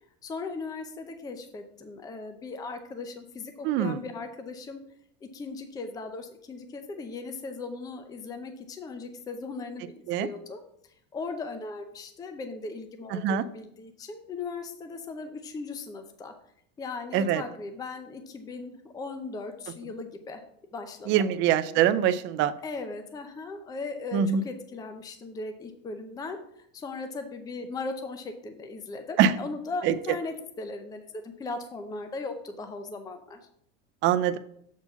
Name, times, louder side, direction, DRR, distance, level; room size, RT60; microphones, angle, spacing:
voice 1, 0.2-4.8 5.2-10.6 11.1-16.3 16.8-20.4 20.7-21.3 22.6-26.4 26.7-33.4, left 3 dB, 10° left, 7 dB, 0.6 m, -38 dB
voice 2, 3.6-4.0 10.1-10.3 13.1-13.4 17.1-17.4 21.1-22.5 24.1-24.4 29.2-29.3 29.8-29.9 34.0-34.4, right 9 dB, 35° right, 12 dB, 0.4 m, -23 dB
7.2 x 4.5 x 5.6 m, 0.69 s
supercardioid pair, 150°, 33 cm